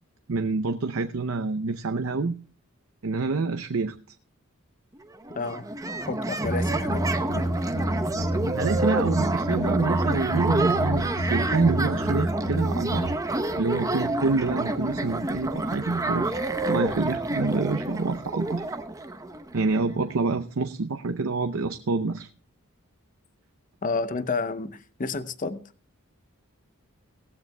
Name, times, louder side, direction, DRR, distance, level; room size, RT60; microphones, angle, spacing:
voice 1, 0.3-2.4 3.0-4.0 8.2-13.1 13.6-18.6 19.5-22.3, right 3 dB, 75° right, 0.6 m, -27 dB
sound 1, 5.0-5.1 5.2-19.9, right 2 dB, 15° right, 0.8 m, -29 dB
voice 2, 5.3-5.7 6.1-7.1 7.3-7.5 23.8-25.6, left 3 dB, 40° left, 0.7 m, -30 dB
sound 2, 6.4-13.1, equal, 65° left, 1.8 m, -29 dB
17.5 x 15.0 x 2.2 m
head